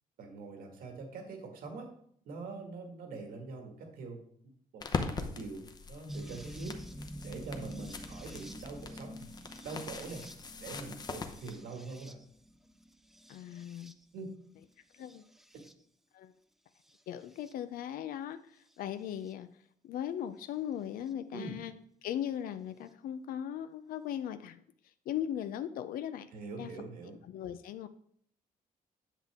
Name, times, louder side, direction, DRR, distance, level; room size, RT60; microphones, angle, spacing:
voice 1, 0.2-1.9 2.3-4.2 4.7-9.3 9.6-10.2 10.6-12.2 14.1-14.3 15.5-15.6 21.3-21.5 26.3-27.1, right 3 dB, 80° right, 3 dB, 2.1 m, -44 dB
sound 1, 4.8-11.5, left 4 dB, 30° left, 0.8 m, -41 dB
sound 2, 6.1-14.2 14.9-15.7 16.9-17.5 19.3-19.4 21.1-21.2, equal, ahead, 0.4 m, -48 dB
voice 2, 13.3-13.9 14.9-15.2 16.1-16.3 17.1-19.5 19.8-21.7 22.0-24.6 25.1-26.3 26.6-26.7 27.1-27.9, left 10 dB, 85° left, 11 dB, 0.5 m, -38 dB
10.0 x 7.3 x 3.6 m, 0.64 s
cardioid pair, 175°, 15 cm